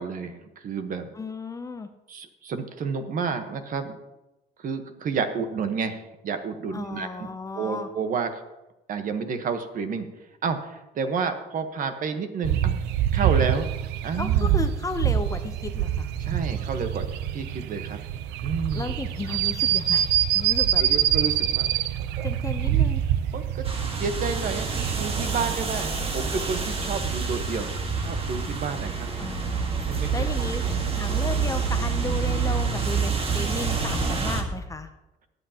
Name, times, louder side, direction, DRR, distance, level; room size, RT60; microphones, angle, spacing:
voice 1, 0.0-1.1 2.1-4.0 4.6-7.3 7.5-8.4 8.9-10.1 10.4-12.8 13.1-13.8 14.0-14.6 16.2-17.0 17.3-18.0 18.4-18.8 20.8-21.7 22.1-22.3 23.3-23.7 24.0-27.7 28.0-29.1 29.9-30.1 30.6-31.0, right 5 dB, 55° right, 8 dB, 1.2 m, -30 dB
voice 2, 1.1-1.9 6.7-7.9 14.2-16.1 18.7-20.8 22.2-23.0 29.2-30.6 30.9-34.9, left 3 dB, 20° left, 9 dB, 0.7 m, -34 dB
sound 1, 12.4-25.3, right 11 dB, 90° right, 0.6 m, -25 dB
sound 2, 23.6-34.4, right 5 dB, 35° right, 1.6 m, -27 dB
20.0 x 8.1 x 2.9 m, 0.98 s
cardioid pair, 110°, 17 cm